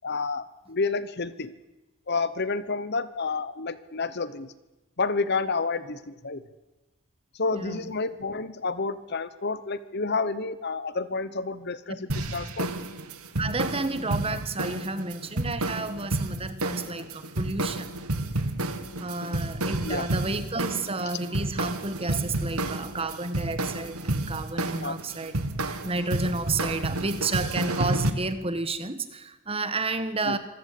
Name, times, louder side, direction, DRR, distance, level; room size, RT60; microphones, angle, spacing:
voice 1, 0.0-1.5 2.1-4.5 5.0-6.4 7.3-12.7 19.8-20.1 24.8-25.0 30.2-30.4, left 4 dB, 50° left, 15 dB, 1.1 m, -30 dB
sound 1, 12.1-28.1, right 2 dB, 85° right, 1.8 m, -30 dB
voice 2, 13.4-17.9 19.0-25.3 25.8-30.4, right 3 dB, 25° right, 11 dB, 1.4 m, -31 dB
26.0 x 16.0 x 8.5 m, 1.0 s
head